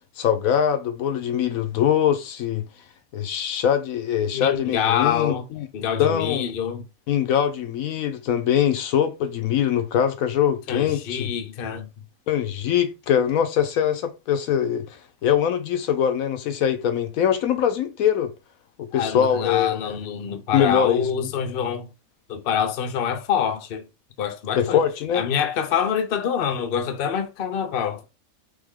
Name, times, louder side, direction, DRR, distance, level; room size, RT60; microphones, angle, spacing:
voice 1, 0.2-2.7 3.1-5.7 6.0-6.5 7.1-11.3 12.3-18.3 18.8-20.0 20.5-21.3 24.6-25.2, left 9 dB, 70° left, 1.0 m, -23 dB
voice 2, 4.3-5.4 5.7-6.8 10.7-11.9 18.9-21.9 22.3-23.9 24.2-24.8 25.1-28.0, left 8 dB, 50° left, 0.7 m, -26 dB
3.5 x 3.4 x 3.6 m
omnidirectional pair, 1.6 m